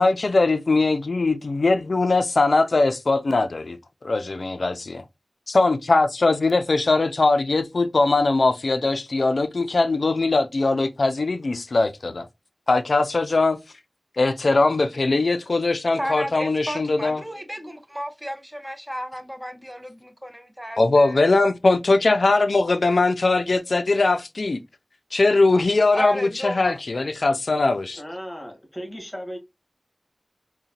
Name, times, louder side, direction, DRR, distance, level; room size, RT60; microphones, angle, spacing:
voice 1, 0.0-3.8 4.0-5.0 5.5-12.3 12.7-13.6 14.2-17.2 20.8-24.6 25.1-28.0, left 3 dB, 90° left, 0.3 m, -21 dB
voice 2, 16.0-21.2 25.5-25.7 25.9-26.8, equal, 10° right, 0.7 m, -32 dB
voice 3, 28.0-29.4, equal, 25° left, 1.4 m, -36 dB
3.8 x 2.1 x 2.7 m
wide cardioid pair, 45°, 0 cm